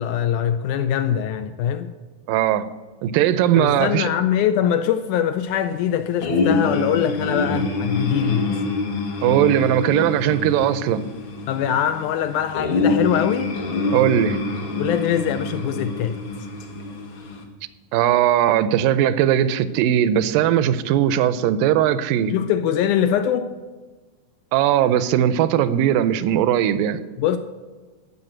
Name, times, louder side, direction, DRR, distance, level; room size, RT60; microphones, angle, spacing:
voice 1, 0.0-1.9 3.6-8.5 11.5-13.5 14.8-16.2 22.3-23.5 27.2-27.4, left 9 dB, 80° left, 1.8 m, -22 dB
voice 2, 2.3-2.7 3.0-4.1 9.2-11.1 13.9-14.4 17.9-22.3 24.5-27.0, right 11 dB, 85° right, 2.2 m, -19 dB
sound 1, 6.2-17.4, left 3 dB, 55° left, 1.5 m, -26 dB
13.5 x 5.7 x 7.7 m
omnidirectional pair, 4.0 m